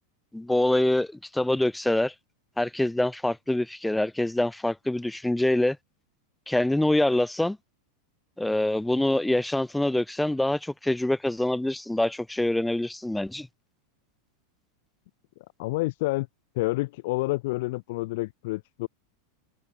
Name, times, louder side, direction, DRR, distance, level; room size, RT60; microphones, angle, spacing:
voice 1, 0.3-2.1 2.6-5.8 6.5-7.6 8.4-13.5, left 1 dB, 5° left, 1.6 m, -25 dB
voice 2, 15.6-16.3 16.5-18.9, left 21 dB, 65° left, 4.2 m, -28 dB
hypercardioid pair, 120°, 0 cm